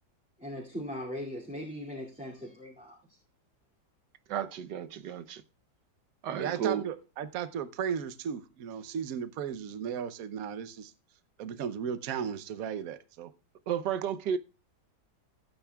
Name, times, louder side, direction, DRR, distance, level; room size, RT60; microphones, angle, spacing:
voice 1, 0.4-3.0, equal, 5° right, 2.3 m, -39 dB
voice 2, 4.3-5.4 6.2-6.9 13.7-14.4, right 8 dB, 80° right, 1.5 m, -32 dB
voice 3, 6.4-10.9 11.4-13.3, right 8 dB, 60° right, 1.2 m, -35 dB
16.0 x 8.9 x 2.3 m
omnidirectional pair, 1.8 m